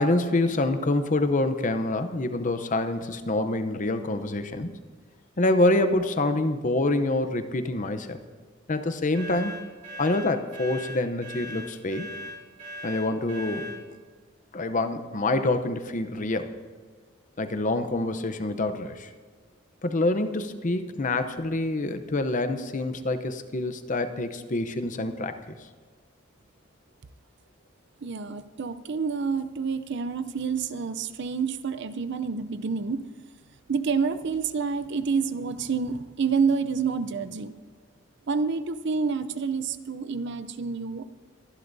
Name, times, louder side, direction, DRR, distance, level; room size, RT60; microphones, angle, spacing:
voice 1, 0.0-4.7 5.4-8.2 8.7-9.6 10.0-12.1 12.8-13.7 14.5-16.5 17.4-19.1 19.8-25.6, left 2 dB, 40° left, 9 dB, 0.8 m, -26 dB
sound 1, 9.1-13.8, left 1 dB, 40° right, 4.3 m, -39 dB
voice 2, 28.0-33.0 33.7-37.5 38.3-41.1, right 5 dB, 60° right, 13 dB, 0.6 m, -28 dB
23.5 x 11.5 x 2.7 m, 1.5 s
head